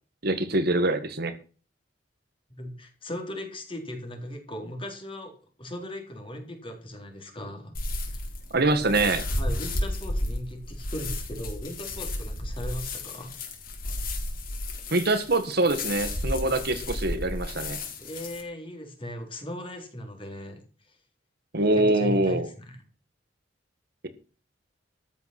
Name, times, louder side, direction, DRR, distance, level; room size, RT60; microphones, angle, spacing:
voice 1, 0.2-1.3 8.5-9.2 14.9-17.8 21.5-22.5, right 2 dB, 60° right, 9 dB, 1.7 m, -24 dB
voice 2, 2.5-5.3 5.6-7.7 8.0-8.3 8.7-13.4 18.0-20.6 20.9-21.0 21.8-22.8, left 1 dB, 30° left, 3 dB, 4.0 m, -38 dB
sound 1, 7.7-18.4, left 1 dB, 50° left, 4.4 m, -33 dB
13.5 x 9.3 x 6.1 m, 0.38 s
head